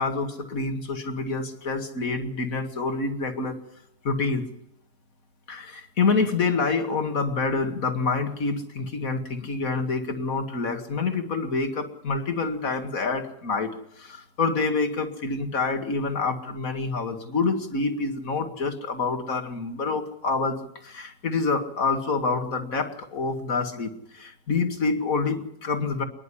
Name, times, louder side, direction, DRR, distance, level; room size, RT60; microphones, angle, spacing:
voice 1, 0.0-3.6 4.0-4.5 5.5-13.7 14.0-26.0, left 4 dB, 55° left, 6 dB, 2.5 m, -27 dB
27.0 x 11.0 x 10.0 m, 0.77 s
omnidirectional pair, 1.7 m